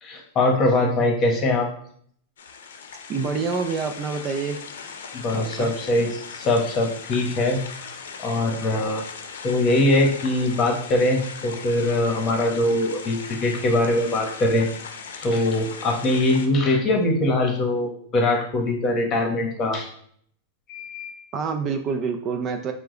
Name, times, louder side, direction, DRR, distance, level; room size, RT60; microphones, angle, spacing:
voice 1, 0.0-1.7 5.1-7.6 8.2-9.0 9.4-14.7 15.2-19.9 20.7-21.2, left 1 dB, 30° left, 2 dB, 1.2 m, -22 dB
sound 1, 2.4-16.5, left 5 dB, 85° left, 0.6 m, -39 dB
voice 2, 3.1-4.6 5.3-5.7 21.3-22.7, right 5 dB, 35° right, 6 dB, 0.5 m, -27 dB
4.6 x 2.2 x 3.8 m, 0.63 s
hypercardioid pair, 120°, 0 cm